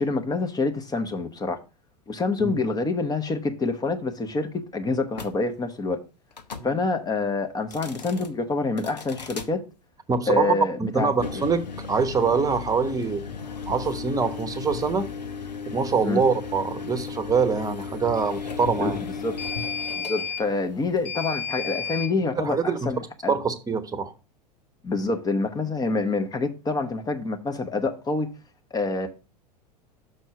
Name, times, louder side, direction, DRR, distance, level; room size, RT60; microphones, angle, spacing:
voice 1, 0.0-1.6 2.1-6.0 6.6-9.6 10.3-11.4 16.0-16.2 18.8-19.4 19.9-23.4 24.8-28.3 28.7-29.1, left 3 dB, 20° left, 0.9 m, -27 dB
sound 1, 5.1-5.3 6.3-6.7 7.6-8.3 8.8-9.5 11.1-22.1, left 6 dB, 80° left, 0.9 m, -34 dB
voice 2, 10.1-10.5 10.8-13.2 13.7-15.1 15.7-19.0 22.4-22.9 23.3-24.1, right 5 dB, 15° right, 1.0 m, -24 dB
6.3 x 4.4 x 5.9 m
figure-of-eight pair, 85°, 21 cm